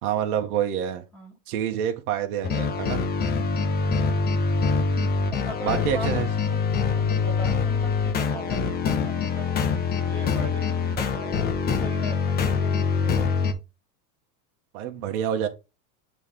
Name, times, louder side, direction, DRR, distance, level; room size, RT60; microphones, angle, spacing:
voice 1, 0.0-1.1 1.5-3.0 5.6-6.3 14.7-15.5, right 9 dB, 75° right, 1.2 m, -27 dB
sound 1, 2.4-13.5, left 5 dB, 20° left, 0.6 m, -24 dB
voice 2, 3.7-4.0 5.3-6.1 6.5-6.6 6.9-9.5 10.0-11.3 11.7-13.5, equal, 5° left, 1.9 m, -40 dB
8.3 x 3.2 x 3.6 m
supercardioid pair, 140°, 44 cm